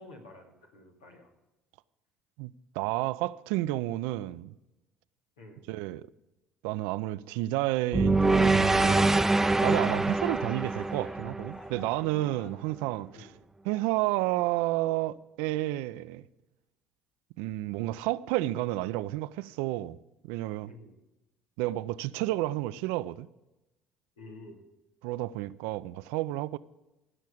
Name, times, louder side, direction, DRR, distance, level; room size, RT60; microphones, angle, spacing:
voice 1, 0.0-1.3 5.4-5.6 13.1-13.4 20.7-21.0 24.2-24.6, left 2 dB, 85° left, 2.2 m, -50 dB
voice 2, 2.4-4.5 5.7-6.0 6.6-9.2 9.6-13.3 13.6-16.3 17.4-20.0 20.3-20.7 21.6-23.3 25.0-26.6, right 17 dB, 70° right, 0.5 m, -31 dB
Cheering, 7.9-13.2 13.6-14.0, left 3 dB, 45° left, 2.1 m, -53 dB
sound 1, 7.9-12.2, right 2 dB, 10° right, 0.6 m, -25 dB
16.0 x 6.3 x 8.5 m
hypercardioid pair, 60°, 3 cm